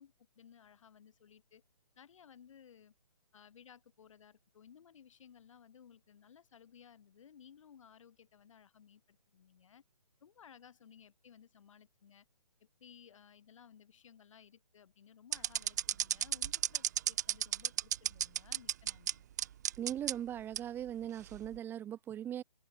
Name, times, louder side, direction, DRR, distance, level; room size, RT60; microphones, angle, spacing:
voice 1, 0.0-1.6 2.0-2.9 3.3-9.8 10.2-12.3 12.8-19.3, left 8 dB, 50° left, 7.1 m, -59 dB
sound 1, 15.3-19.1 19.4-20.1 20.6-20.7 21.3-21.6, right 11 dB, 25° right, 0.5 m, -32 dB
voice 2, 19.8-22.4, right 10 dB, 10° right, 1.6 m, -39 dB
hypercardioid pair, 155°, 21 cm